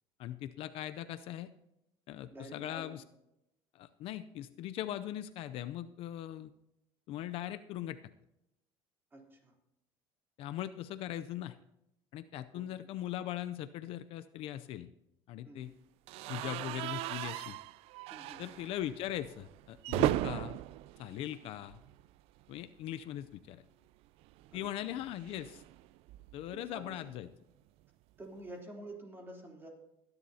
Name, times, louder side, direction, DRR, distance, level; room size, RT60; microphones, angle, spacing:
voice 1, 0.2-1.5 2.1-3.0 3.7-6.5 7.1-8.0 10.4-11.6 12.1-14.9 15.3-15.7 16.3-17.6 18.4-20.6 21.0-21.8 22.5-23.6 24.5-25.6 26.3-27.3, left 12 dB, 60° left, 12 dB, 0.5 m, -40 dB
voice 2, 2.3-3.0 9.1-9.5 12.5-12.6 15.4-15.6 18.1-18.4 21.3-21.5 24.5-25.0 26.5-27.0 28.2-29.7, right 1 dB, 20° right, 0 dB, 3.3 m, -49 dB
sound 1, 16.1-22.1 22.4-22.6 22.9-23.0 24.2-26.6, right 15 dB, 70° right, 0.4 m, -38 dB
21.0 x 10.5 x 2.8 m, 0.83 s
cardioid pair, 120°, 11 cm